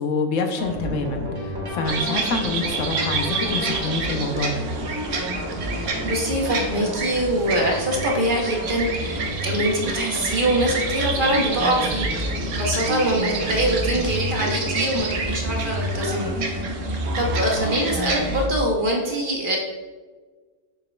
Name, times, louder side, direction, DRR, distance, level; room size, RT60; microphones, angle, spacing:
voice 1, 0.0-4.6, left 3 dB, 70° left, 5 dB, 1.0 m, -26 dB
sound 1, 0.6-18.6, equal, 20° right, 0.7 m, -30 dB
sound 2, 1.8-18.5, right 4 dB, 70° right, 1.1 m, -30 dB
voice 2, 5.8-16.5 16.9-19.6, right 1 dB, 45° right, -1 dB, 1.0 m, -24 dB
6.7 x 6.2 x 2.2 m, 1.4 s
omnidirectional pair, 1.4 m